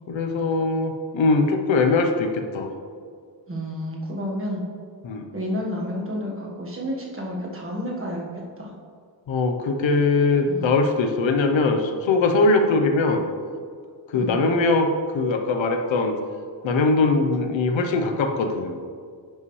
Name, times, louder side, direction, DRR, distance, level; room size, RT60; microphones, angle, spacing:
voice 1, 0.1-2.7 5.0-5.2 9.3-13.2 14.1-14.9 15.1-16.2 16.6-18.8, left 3 dB, 75° left, 5 dB, 0.9 m, -21 dB
voice 2, 3.5-4.6 5.3-8.7 10.5-10.8 14.1-14.4, equal, 30° right, -2 dB, 1.5 m, -30 dB
10.5 x 5.6 x 3.2 m, 2.1 s
wide cardioid pair, 125°, 46 cm